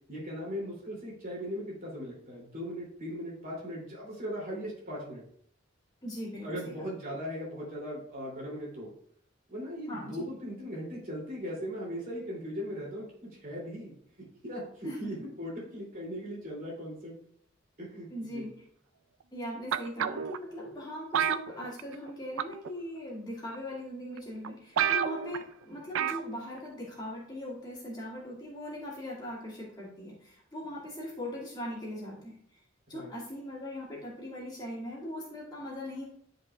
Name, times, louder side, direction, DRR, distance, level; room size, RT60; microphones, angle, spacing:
voice 1, 0.1-5.2 6.4-8.9 9.5-13.9 14.4-17.2 17.8-18.4 32.9-33.1, equal, 45° right, -4 dB, 2.9 m, -38 dB
voice 2, 6.0-6.8 9.9-10.2 14.8-15.1 18.1-18.5 19.3-32.6 32.9-36.0, equal, 20° left, -6 dB, 2.1 m, -40 dB
sound 1, 19.7-20.4 21.1-22.1 22.4-22.7 23.5-23.6 24.2-24.3 24.4-24.5 24.8-25.4 25.9-26.3 26.6-26.7, right 8 dB, 70° right, 0.3 m, -29 dB
11.0 x 4.9 x 2.4 m, 0.65 s
head